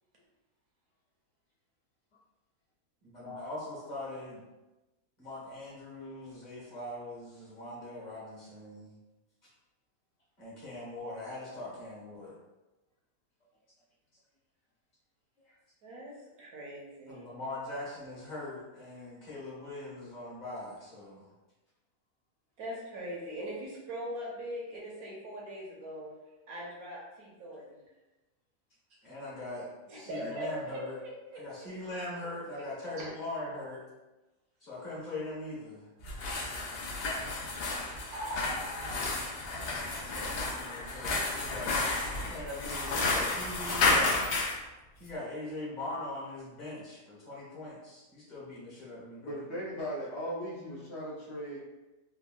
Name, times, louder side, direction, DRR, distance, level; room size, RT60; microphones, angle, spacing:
voice 1, 3.1-4.4 5.2-8.9 10.4-12.4 17.1-21.2 29.0-30.9 31.3-33.8 34.6-35.9 39.9-44.2 45.0-49.4 50.6-50.8, left 2 dB, 35° left, -8 dB, 1.1 m, -41 dB
voice 2, 15.8-16.1 16.4-17.3 22.6-26.1 26.5-27.8 29.9-31.9 33.0-33.2 37.1-37.6 38.1-39.7 40.2-40.3, right 1 dB, 75° right, -4 dB, 1.2 m, -41 dB
sound 1, 36.0-44.6, left 3 dB, 85° left, 0.5 m, -31 dB
voice 3, 49.2-51.6, equal, 60° left, -7 dB, 0.8 m, -38 dB
3.4 x 2.2 x 2.2 m, 1.1 s
omnidirectional pair, 1.6 m